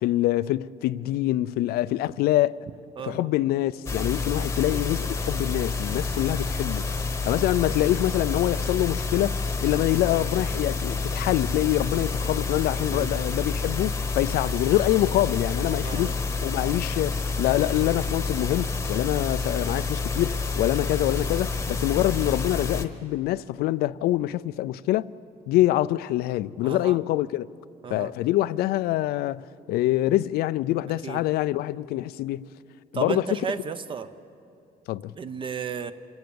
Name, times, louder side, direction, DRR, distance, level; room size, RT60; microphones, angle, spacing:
voice 1, 0.0-2.7 3.0-6.8 7.3-25.1 25.5-27.4 27.9-32.5 32.9-33.4 34.9-35.2, left 15 dB, 80° left, 0.5 m, -25 dB
voice 2, 3.0-3.3 12.9-13.1 15.8-16.1 26.6-27.0 27.8-28.1 31.0-31.2 32.9-34.1 35.2-35.9, right 6 dB, 35° right, 0.8 m, -33 dB
sound 1, 3.9-22.8, left 4 dB, 20° left, 1.1 m, -29 dB
26.0 x 17.5 x 7.0 m
cardioid pair, 140°, 16 cm